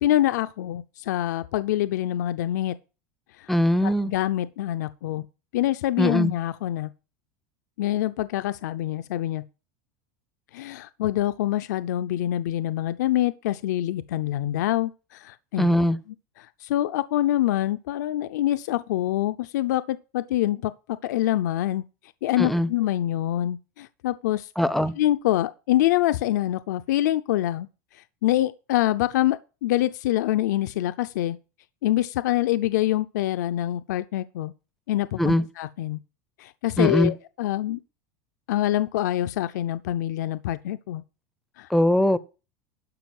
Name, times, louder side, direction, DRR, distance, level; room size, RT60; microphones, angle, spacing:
voice 1, 0.0-2.8 3.4-3.5 3.8-5.3 5.5-6.9 7.8-9.4 10.5-15.7 16.4-20.7 21.0-21.8 22.2-24.5 24.9-27.7 28.2-31.4 31.8-34.5 34.9-36.0 36.4-37.8 38.5-41.0 41.6-41.7, left 14 dB, 90° left, 0.5 m, -25 dB
voice 2, 3.5-4.1 6.0-6.3 15.6-16.0 22.4-22.7 24.6-24.9 35.2-35.4 36.8-37.1 41.7-42.2, equal, ahead, 0.4 m, -21 dB
11.5 x 5.3 x 5.9 m
supercardioid pair, 170°, 9 cm